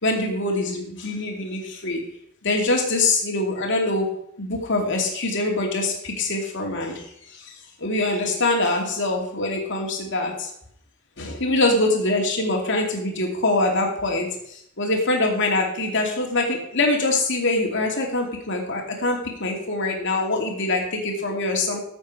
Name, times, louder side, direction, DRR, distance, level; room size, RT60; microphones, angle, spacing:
voice 1, 0.0-2.0 2.4-4.1 4.4-7.5 7.8-10.5 11.2-21.8, left 2 dB, 60° left, 1 dB, 2.5 m, -24 dB
13.5 x 7.8 x 4.8 m, 0.72 s
head